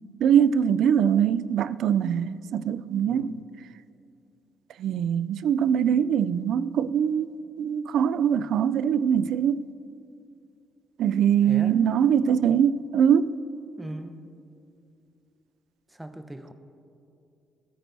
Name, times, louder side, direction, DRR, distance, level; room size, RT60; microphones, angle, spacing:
voice 1, 0.2-3.3 4.8-9.7 11.0-13.3, right 8 dB, 75° right, 0.3 m, -22 dB
voice 2, 3.0-3.5 11.4-11.8 13.8-14.3 15.9-16.5, right 1 dB, 10° right, 0.8 m, -39 dB
20.5 x 9.2 x 2.7 m
cardioid pair, 90°, 0 cm